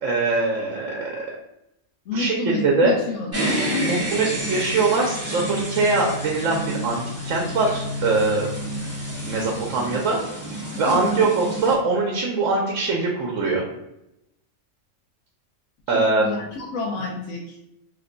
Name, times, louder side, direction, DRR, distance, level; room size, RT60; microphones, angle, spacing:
voice 1, 0.0-1.2 2.1-2.9 3.8-8.5 9.2-10.2 10.8-13.6 15.9-16.2, right 3 dB, 75° right, -1 dB, 1.0 m, -22 dB
voice 2, 2.1-3.5 10.9-11.3 15.9-17.6, left 3 dB, 75° left, -3 dB, 1.0 m, -29 dB
sound 1, 3.3-11.7, equal, 15° right, 0.7 m, -29 dB
3.0 x 2.2 x 3.7 m, 0.85 s
omnidirectional pair, 1.3 m